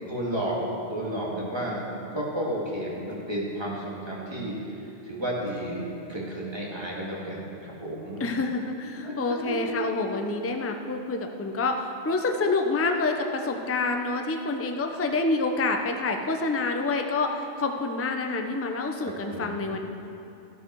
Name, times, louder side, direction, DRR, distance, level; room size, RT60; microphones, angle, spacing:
voice 1, 0.1-0.6 0.9-1.9 2.1-4.5 5.0-5.8 6.1-8.2 9.0-9.7 19.0-19.7, right 1 dB, 20° right, -5 dB, 2.4 m, -32 dB
voice 2, 8.2-19.8, left 3 dB, 15° left, 4 dB, 0.5 m, -27 dB
12.5 x 12.0 x 4.6 m, 2.9 s
omnidirectional pair, 1.2 m